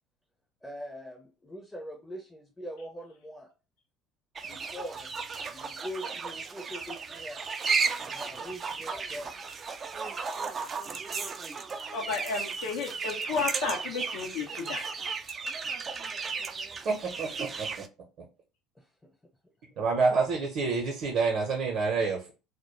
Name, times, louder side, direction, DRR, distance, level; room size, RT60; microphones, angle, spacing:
voice 1, 0.6-3.5 4.4-5.1 5.5-7.4 8.0-9.3 18.8-18.9, equal, 10° left, 1 dB, 0.6 m, -42 dB
sound 1, 4.4-17.9, right 5 dB, 35° right, 0.3 m, -34 dB
voice 2, 11.9-14.9, left 4 dB, 70° left, 1 dB, 0.5 m, -32 dB
voice 3, 16.8-17.7 18.2-18.3 19.8-22.3, right 4 dB, 50° right, 0 dB, 0.7 m, -28 dB
2.2 x 2.1 x 3.0 m, 0.31 s
hypercardioid pair, 65°, 0 cm